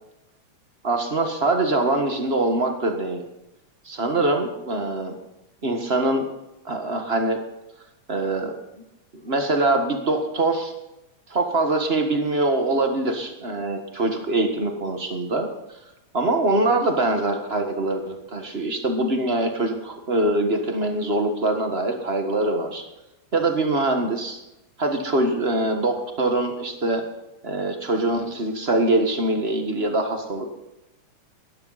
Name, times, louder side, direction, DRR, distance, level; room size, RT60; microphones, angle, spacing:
voice 1, 0.8-3.2 3.8-5.2 5.6-6.2 6.6-7.4 8.1-8.5 9.1-10.7 11.3-15.5 16.1-22.8 23.3-24.4 24.8-27.0 27.4-30.5, right 2 dB, 35° right, 4 dB, 1.0 m, -23 dB
17.5 x 12.5 x 4.1 m, 0.95 s
omnidirectional pair, 3.5 m